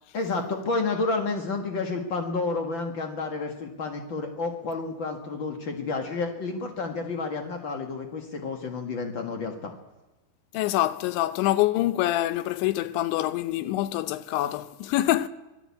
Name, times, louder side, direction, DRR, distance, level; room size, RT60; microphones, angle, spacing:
voice 1, 0.1-9.7, left 3 dB, 70° left, 1.1 m, -30 dB
voice 2, 10.5-15.3, left 15 dB, 85° left, 3.2 m, -25 dB
25.5 x 17.5 x 8.5 m
omnidirectional pair, 5.2 m